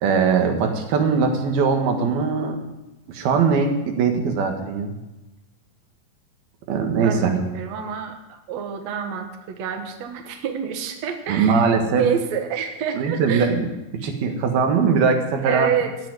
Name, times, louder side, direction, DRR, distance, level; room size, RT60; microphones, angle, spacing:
voice 1, 0.0-2.6 3.1-4.9 6.7-7.4 11.3-12.1 12.9-13.7 13.9-15.7, right 5 dB, 85° right, 4 dB, 3.6 m, -21 dB
voice 2, 7.0-11.7 12.0-13.5 15.4-16.0, right 8 dB, 55° right, 5 dB, 2.3 m, -28 dB
16.0 x 7.1 x 9.8 m, 0.99 s
omnidirectional pair, 4.2 m